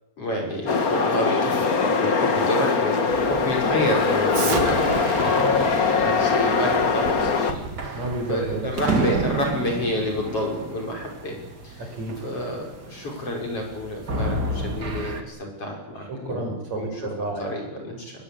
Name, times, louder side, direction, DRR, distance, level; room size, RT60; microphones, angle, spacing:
voice 1, 0.2-5.3 5.6-8.0 8.3-11.4 11.6-11.9 12.2-16.9 17.4-18.1, left 1 dB, 35° left, 0 dB, 6.6 m, -29 dB
sound 1, 0.7-7.5, left 5 dB, 55° left, 0.9 m, -22 dB
sound 2, 3.1-15.2, right 2 dB, 30° right, 2.6 m, -33 dB
Explosion, 4.3-9.4, right 5 dB, 70° right, 4.3 m, -32 dB
voice 2, 5.3-5.6 7.9-8.7 9.0-9.1 11.8-12.2 16.0-17.6, right 2 dB, 45° right, 3 dB, 6.3 m, -31 dB
24.5 x 21.5 x 8.8 m, 0.93 s
omnidirectional pair, 4.4 m